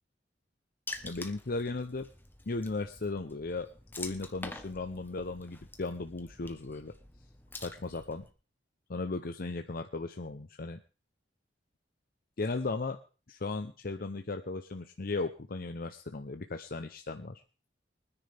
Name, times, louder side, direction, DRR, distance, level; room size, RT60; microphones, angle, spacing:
Water / Splash splatter, 0.9-8.3, left 2 dB, 10° left, 1.2 m, -47 dB
voice 1, 1.0-2.1 2.5-3.7 4.0-6.9 7.6-8.3 8.9-10.8 12.4-13.0 13.3-17.4, left 3 dB, 55° left, 7 dB, 0.8 m, -36 dB
24.0 x 10.0 x 3.5 m, 0.36 s
head